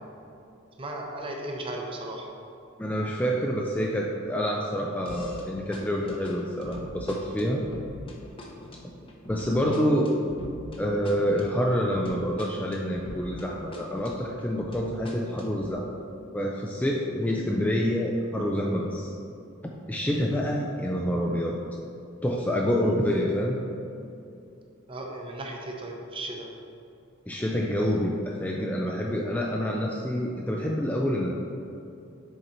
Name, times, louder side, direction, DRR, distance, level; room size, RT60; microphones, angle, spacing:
voice 1, 0.8-2.3 24.9-26.5, right 1 dB, 25° right, 1 dB, 0.7 m, -36 dB
voice 2, 2.8-7.6 9.3-10.2 10.8-15.9 16.3-19.1 19.9-21.6 22.2-23.6 27.3-31.3, equal, 10° left, -1 dB, 0.3 m, -27 dB
sound 1, 5.1-5.5 5.7-13.5 13.7-15.7, left 1 dB, 25° left, 0.7 m, -43 dB
6.5 x 4.4 x 4.4 m, 2.7 s
head